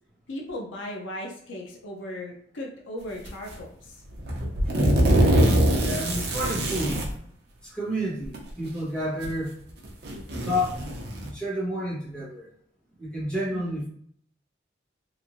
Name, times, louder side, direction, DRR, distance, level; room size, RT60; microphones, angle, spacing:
voice 1, 0.3-4.0 13.5-13.9, left 1 dB, 75° left, 0 dB, 0.6 m, -37 dB
sound 1, 3.2-3.6 4.2-7.1 8.2-8.4 9.2-9.3 9.8-11.3, right 1 dB, 55° right, 0.7 m, -23 dB
voice 2, 4.7-5.1 5.8-7.0 7.6-9.5 10.4-12.5 13.0-13.9, equal, 5° left, -7 dB, 1.1 m, -30 dB
3.0 x 2.6 x 2.5 m, 0.64 s
head